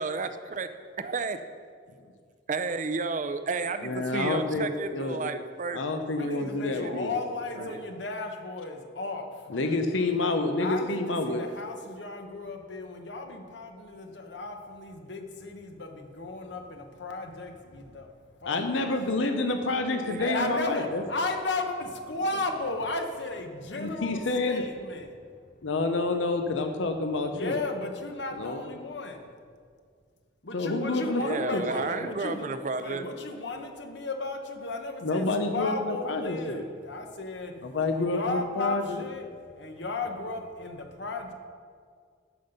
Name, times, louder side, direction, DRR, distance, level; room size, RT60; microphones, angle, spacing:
voice 1, 0.0-0.7 1.0-1.4 2.5-7.2 7.6-7.8 20.0-20.9 21.2-21.4 31.2-33.1, right 4 dB, 40° right, 10 dB, 0.5 m, -33 dB
voice 2, 3.8-5.3 5.7-7.1 7.6-7.7 9.5-11.4 18.4-21.0 23.8-24.7 25.6-27.6 28.3-28.6 30.5-31.8 35.0-36.6 37.6-39.0, left 2 dB, 85° left, 6 dB, 0.8 m, -28 dB
voice 3, 6.2-9.3 10.6-18.1 18.4-19.4 20.2-25.1 27.3-29.3 30.4-32.5 32.8-37.5 37.9-39.3 39.5-41.3, left 2 dB, 65° left, 4 dB, 1.1 m, -35 dB
13.5 x 5.7 x 5.3 m, 2.1 s
head